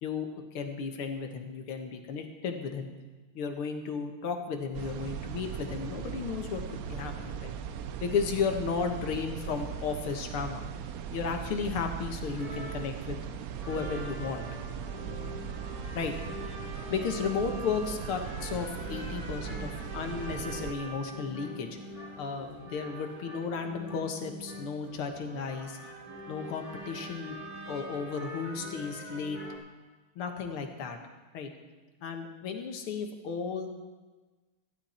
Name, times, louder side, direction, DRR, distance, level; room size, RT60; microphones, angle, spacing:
voice 1, 0.0-2.9 3.3-7.5 8.0-10.7 11.1-13.2 13.7-14.5 15.9-16.4 16.9-21.7 22.2-25.8 26.3-27.4 27.7-29.4 30.2-31.0 31.3-31.5 32.0-33.7, left 5 dB, 85° left, 4 dB, 2.2 m, -34 dB
sound 1, 4.7-20.7, right 8 dB, 85° right, 0.7 m, -39 dB
sound 2, 12.3-29.6, equal, 15° right, 2.8 m, -44 dB
15.0 x 12.0 x 4.3 m, 1.3 s
omnidirectional pair, 2.3 m